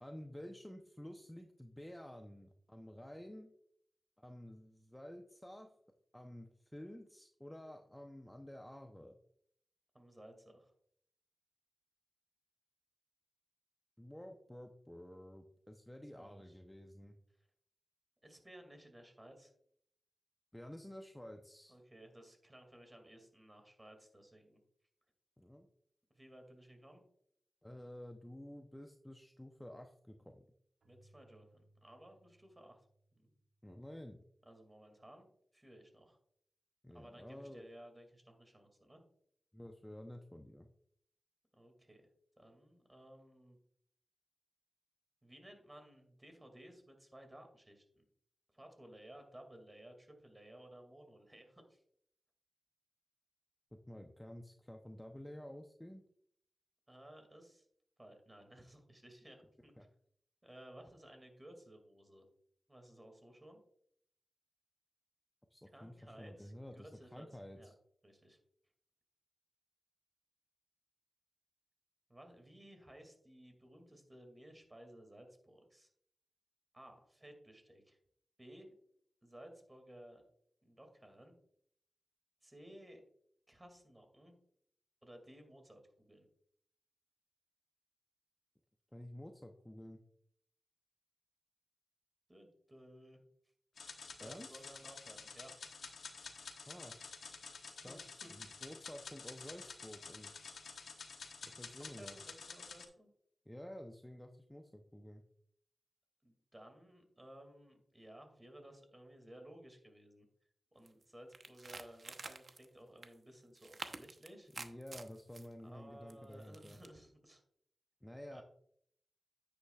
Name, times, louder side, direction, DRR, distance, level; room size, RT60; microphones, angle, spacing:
voice 1, 0.0-3.5 4.2-5.7 6.1-9.2 14.0-17.2 20.5-21.8 25.4-25.7 27.6-30.5 33.6-34.2 36.8-37.7 39.5-40.7 53.7-56.0 59.8-59.9 65.5-67.6 88.9-90.0 94.2-94.6 96.7-96.9 97.8-98.0 98.3-100.5 101.4-102.2 103.5-105.2 114.6-116.8 118.0-118.4, left 1 dB, 10° left, 4 dB, 0.7 m, -51 dB
voice 2, 9.9-10.7 16.2-16.6 18.2-19.5 21.7-24.6 26.1-27.0 30.8-32.8 33.1-33.3 34.5-36.2 36.9-39.0 41.5-42.0 42.4-43.6 45.2-48.0 48.5-51.8 56.9-57.7 58.0-59.7 60.4-62.2 62.7-63.6 65.7-67.7 68.0-68.4 72.1-75.9 76.7-78.0 78.4-78.7 79.2-80.2 80.6-81.3 82.4-83.0 83.5-84.3 85.0-86.3 92.3-93.2 94.1-95.5 97.8-98.3 101.8-103.1 106.2-110.2 110.7-114.5 115.6-117.4 118.3-118.4, right 1 dB, 20° right, 4 dB, 2.3 m, -57 dB
Keyboard (musical), 30.8-34.3, right 1 dB, 75° right, 1.9 m, -71 dB
sound 1, 93.8-102.8, left 5 dB, 90° left, 1.1 m, -50 dB
sound 2, 110.9-111.0 111.3-112.7 113.0-113.1 113.6-115.5 116.1-116.9, right 3 dB, 50° right, 0.9 m, -48 dB
9.7 x 8.4 x 2.4 m, 0.67 s
wide cardioid pair, 80°, 0 cm